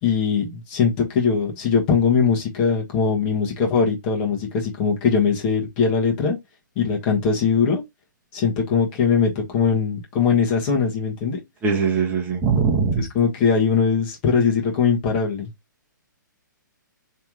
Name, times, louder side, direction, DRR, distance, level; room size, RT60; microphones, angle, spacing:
voice 1, 0.0-6.4 6.7-7.8 8.3-11.4 13.0-15.5, left 6 dB, 35° left, 1.4 m, -21 dB
voice 2, 11.6-13.0, right 5 dB, 15° right, 1.1 m, -21 dB
3.4 x 3.3 x 3.0 m
figure-of-eight pair, 130°, 11 cm